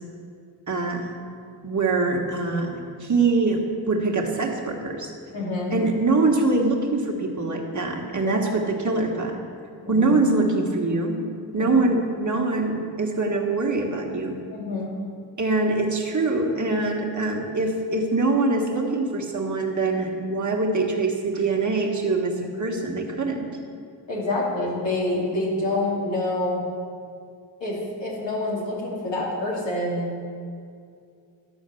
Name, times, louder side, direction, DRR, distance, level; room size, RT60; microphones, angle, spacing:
voice 1, 0.7-1.2 1.6-3.6 3.9-5.1 5.7-9.4 9.9-11.2 11.5-14.4 15.4-23.5, right 3 dB, 40° right, 1 dB, 1.6 m, -24 dB
voice 2, 5.3-5.7 8.2-8.4 9.8-10.1 11.6-11.7 14.5-15.0 24.1-26.6 27.6-30.1, left 2 dB, 75° left, -5 dB, 2.7 m, -27 dB
12.0 x 4.5 x 7.0 m, 2.4 s
cardioid pair, 55°, 44 cm